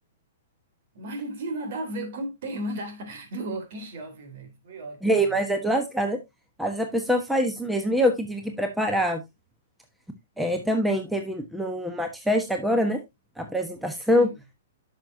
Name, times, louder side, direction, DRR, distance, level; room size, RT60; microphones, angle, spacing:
voice 1, 0.9-5.4 14.1-14.4, right 1 dB, 60° right, 3.4 m, -35 dB
voice 2, 5.0-6.2 6.6-9.2 10.4-13.0 13.4-14.3, equal, 5° right, 1.2 m, -24 dB
10.0 x 6.4 x 2.8 m
hypercardioid pair, 125°, 0 cm